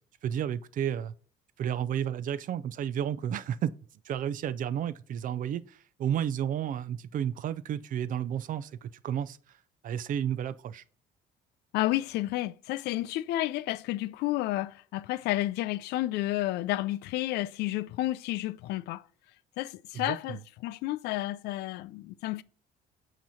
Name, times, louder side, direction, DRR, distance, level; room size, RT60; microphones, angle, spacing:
voice 1, 0.2-1.1 1.6-3.7 4.1-9.4 9.8-10.8 19.9-20.2, right 9 dB, 55° right, 0.5 m, -32 dB
voice 2, 11.7-19.0 19.6-22.4, left 16 dB, 80° left, 0.4 m, -31 dB
8.7 x 3.0 x 5.6 m
cardioid pair, 110°, 17 cm